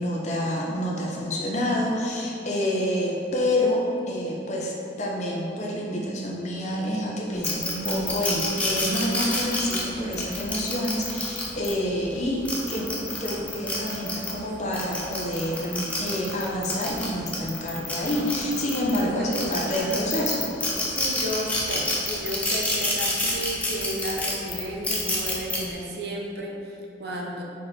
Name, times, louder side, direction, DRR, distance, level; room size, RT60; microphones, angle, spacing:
voice 1, 0.0-20.5, left 1 dB, 40° left, -2 dB, 0.8 m, -28 dB
sound 1, 7.4-11.7 12.3-14.3 14.7-19.0 19.3-25.6, left 1 dB, 10° left, 0.7 m, -28 dB
voice 2, 20.8-27.4, right 1 dB, 55° right, -2 dB, 0.8 m, -33 dB
4.7 x 4.6 x 4.4 m, 2.7 s
head